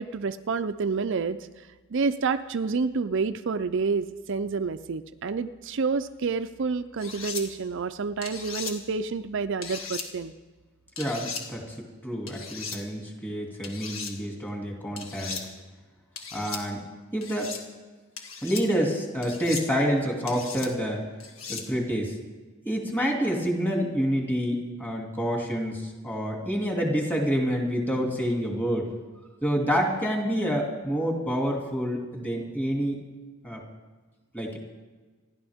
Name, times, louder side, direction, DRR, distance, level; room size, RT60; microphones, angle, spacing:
voice 1, 0.0-1.4 1.9-10.3, right 4 dB, 60° right, 10 dB, 0.5 m, -28 dB
sound 1, 7.0-7.4 8.2-8.7 9.6-10.1 11.0-11.4 12.3-12.8 13.6-14.1 15.0-15.4 16.2-16.6 17.2-17.6 18.2-18.6 19.2-19.7 20.3-20.7 21.2-21.6, left 5 dB, 65° left, 1.8 m, -37 dB
voice 2, 11.0-15.4 16.3-16.8 17.1-17.5 18.4-21.0 21.5-22.1 22.7-28.9 29.4-33.0 33.4-33.6 34.3-34.6, equal, 10° left, 0 dB, 2.5 m, -28 dB
27.5 x 11.5 x 3.6 m, 1.3 s
head